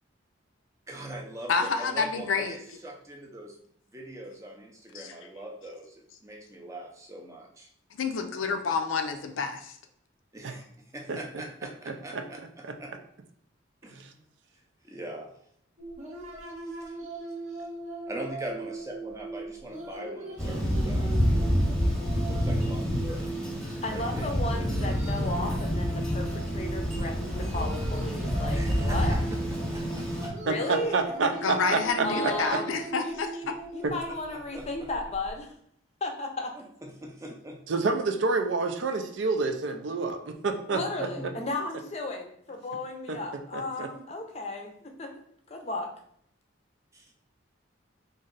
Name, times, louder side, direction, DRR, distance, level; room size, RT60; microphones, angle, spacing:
voice 1, 0.9-3.6 3.9-7.7 10.3-12.9 13.8-14.2 14.8-15.4 16.6-17.0 17.6-17.7 18.1-21.2 22.3-23.3 23.7-24.3 28.5-29.2 29.7-30.5 32.0-32.5 33.8-34.9 36.5-37.6 40.8-41.5 46.9-47.1, right 1 dB, 15° right, 1 dB, 0.5 m, -42 dB
voice 2, 1.5-2.6 4.9-5.1 7.9-9.8 31.4-33.6, left 5 dB, 80° left, 6 dB, 0.5 m, -29 dB
voice 3, 11.9-12.2 12.6-12.7 14.0-14.1 30.5-32.6 33.8-33.9 37.7-40.8 43.1-43.2 43.5-43.9, right 4 dB, 70° right, 6 dB, 0.5 m, -28 dB
sound 1, 15.8-35.3, right 2 dB, 35° right, 0.9 m, -40 dB
Thunder, 20.4-30.3, equal, 5° left, 0.9 m, -28 dB
voice 4, 23.8-29.2 30.4-31.0 31.2-31.3 32.0-32.7 33.0-33.2 33.7-35.5 36.0-36.5 40.7-45.1 45.5-45.9, left 2 dB, 35° left, 3 dB, 0.5 m, -34 dB
3.1 x 2.6 x 3.9 m, 0.67 s
head